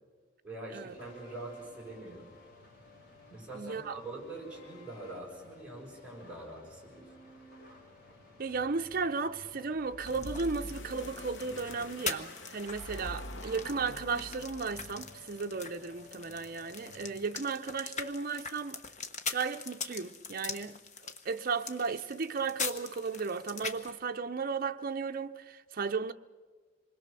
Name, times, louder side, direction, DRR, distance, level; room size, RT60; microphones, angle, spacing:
voice 1, 0.4-2.3 3.3-7.0, right 2 dB, 5° right, 6.5 m, -44 dB
sound 1, 0.9-17.1, left 2 dB, 55° left, 4.5 m, -55 dB
voice 2, 3.5-3.9 8.4-18.8 19.3-26.1, right 4 dB, 50° right, 0.7 m, -35 dB
sound 2, 9.8-15.0, left 1 dB, 75° left, 1.1 m, -45 dB
sound 3, 10.0-23.9, left 5 dB, 40° left, 1.1 m, -42 dB
26.5 x 21.0 x 6.8 m
head